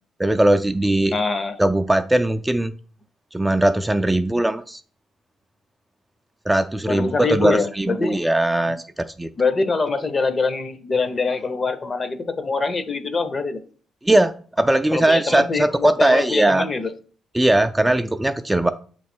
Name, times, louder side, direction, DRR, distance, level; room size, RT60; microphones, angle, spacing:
voice 1, 0.2-1.1 1.6-2.7 3.3-4.8 6.5-9.3 14.0-16.7 17.3-18.7, right 1 dB, 10° right, 0.3 m, -19 dB
voice 2, 1.1-1.6 6.9-8.2 9.3-13.6 14.9-16.9, left 4 dB, 35° left, 0.7 m, -24 dB
7.5 x 3.1 x 4.3 m
cardioid pair, 90°, 0 cm